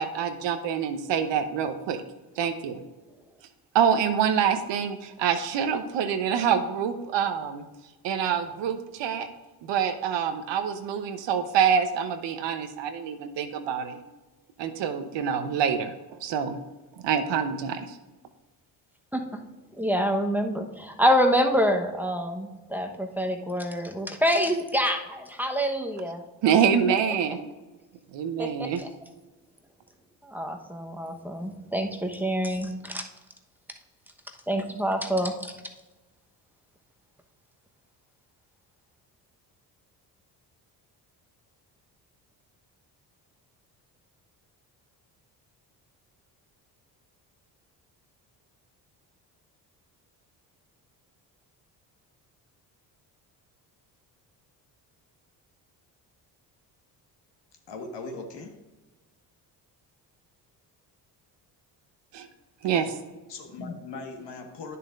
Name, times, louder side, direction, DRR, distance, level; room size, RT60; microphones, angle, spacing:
voice 1, 0.0-2.0 2.4-2.8 3.7-7.6 8.0-9.3 9.6-14.0 14.6-15.9 16.2-16.6 17.0-18.0 26.4-27.4 28.1-28.8 62.1-62.3 62.6-62.9, right 7 dB, 60° right, 8 dB, 1.0 m, -26 dB
voice 2, 19.8-26.2 28.4-28.9 30.2-33.0 34.5-35.5, equal, 5° right, 4 dB, 1.1 m, -26 dB
voice 3, 57.7-58.5 62.7-62.8 63.3-64.8, left 3 dB, 55° left, 4 dB, 1.6 m, -39 dB
10.5 x 6.7 x 2.5 m, 1.1 s
hypercardioid pair, 55°, 49 cm